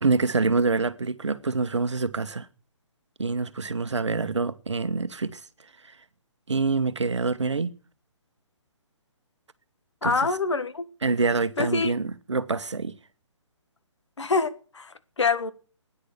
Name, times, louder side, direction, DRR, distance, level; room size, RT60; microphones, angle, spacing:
voice 1, 0.0-2.5 3.2-5.4 6.5-7.7 10.0-10.1 11.0-12.9, right 4 dB, 65° right, 1.3 m, -26 dB
voice 2, 10.0-10.9 11.6-11.9 14.2-15.5, left 4 dB, 65° left, 1.7 m, -25 dB
16.5 x 10.0 x 8.4 m
figure-of-eight pair, 135°, 16 cm